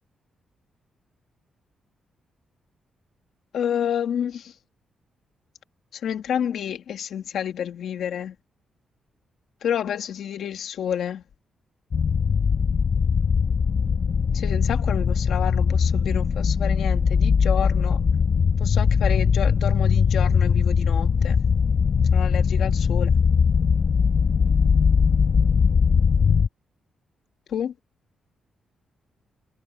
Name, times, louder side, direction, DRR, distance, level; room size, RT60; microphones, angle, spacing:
voice 1, 3.5-4.5 6.0-8.3 9.6-11.2 14.3-18.0 18.6-21.4 22.1-23.2 27.5-27.7, left 9 dB, 65° left, 2.4 m, -29 dB
sound 1, 11.9-26.5, left 6 dB, 40° left, 1.8 m, -20 dB
wide cardioid pair, 155°, 0 cm